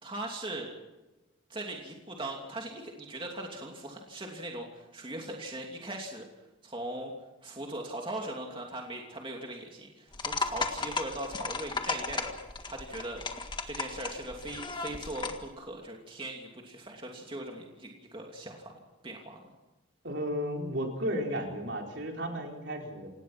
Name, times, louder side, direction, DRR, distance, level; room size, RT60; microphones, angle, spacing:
voice 1, 0.0-0.8 1.5-6.3 6.6-7.1 7.4-12.3 12.6-13.2 13.7-18.7 19.0-19.5, right 1 dB, 25° right, 1 dB, 2.8 m, -40 dB
sound 1, 10.1-15.5, left 4 dB, 20° left, 1.7 m, -35 dB
voice 2, 20.0-23.1, equal, 60° right, 1 dB, 4.4 m, -33 dB
27.0 x 19.5 x 6.1 m, 1.1 s
head